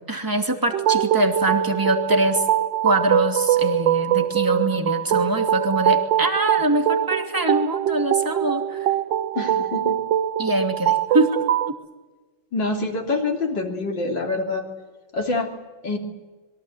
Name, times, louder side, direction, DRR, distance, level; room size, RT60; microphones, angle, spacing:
voice 1, 0.1-2.4 2.8-8.9 10.4-11.7, right 1 dB, 10° right, 5 dB, 2.5 m, -23 dB
sound 1, 0.7-11.7, right 11 dB, 70° right, 1.7 m, -23 dB
voice 2, 9.4-10.0 12.5-14.7 15.1-15.5 15.8-16.0, left 3 dB, 65° left, 2 dB, 3.9 m, -26 dB
26.0 x 23.0 x 8.0 m, 1.2 s
omnidirectional pair, 2.1 m